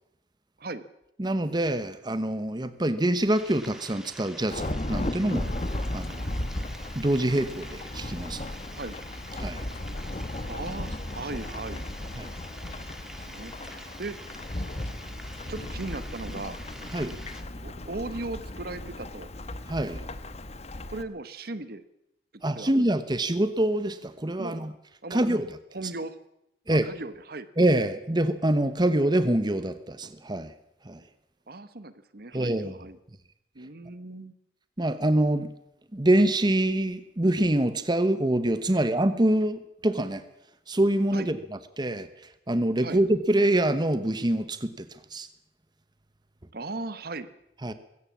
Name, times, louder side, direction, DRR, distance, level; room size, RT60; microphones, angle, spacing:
voice 1, 1.2-5.5 5.9-6.4 6.9-8.4 9.4-9.6 12.2-12.3 16.9-17.2 19.7-20.0 22.4-24.7 25.1-25.5 26.7-26.9 27.6-30.5 30.8-31.0 32.3-32.8 34.8-35.5 35.9-40.2 40.7-41.4 41.8-45.3 47.6-47.7, right 1 dB, 25° right, 12 dB, 1.0 m, -25 dB
sound 1, 3.3-17.4, equal, 5° right, 1.8 m, -47 dB
Thunderstorm / Rain, 4.5-21.0, left 1 dB, 35° left, 1.1 m, -35 dB
voice 2, 10.5-11.9 13.0-14.4 15.5-16.6 17.6-19.3 20.9-21.8 22.5-22.7 24.4-24.6 25.0-25.2 25.7-26.2 26.7-27.5 31.5-33.0 33.5-34.3 41.1-41.3 42.8-43.0 46.5-47.3, right 2 dB, 55° right, 13 dB, 1.1 m, -37 dB
21.0 x 16.5 x 7.4 m, 0.82 s
head